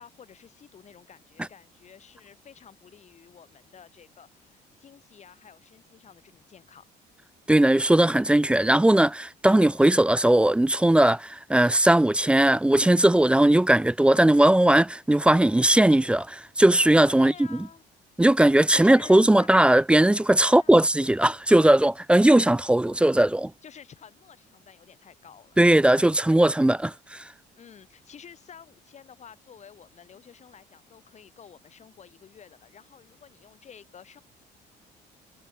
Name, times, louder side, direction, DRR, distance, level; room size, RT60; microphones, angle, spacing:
voice 1, 0.0-6.8 17.2-17.8 18.7-19.5 20.4-20.9 23.6-25.6 27.5-34.2, left 7 dB, 45° left, 5.8 m, -50 dB
voice 2, 7.5-17.6 18.2-23.5 25.6-27.3, right 1 dB, 5° right, 0.3 m, -19 dB
cardioid pair, 110°, 17 cm